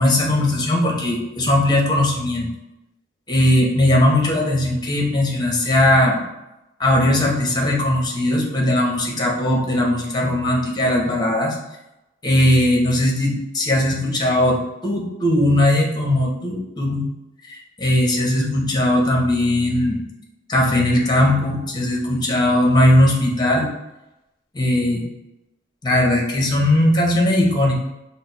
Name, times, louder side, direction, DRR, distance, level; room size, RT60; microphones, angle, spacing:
voice 1, 0.0-2.5 3.3-6.2 6.8-11.6 12.2-14.6 14.8-17.1 17.5-20.0 20.5-23.7 24.5-25.1 25.8-27.7, left 1 dB, 20° left, -1 dB, 0.8 m, -18 dB
4.6 x 2.0 x 3.9 m, 0.93 s
head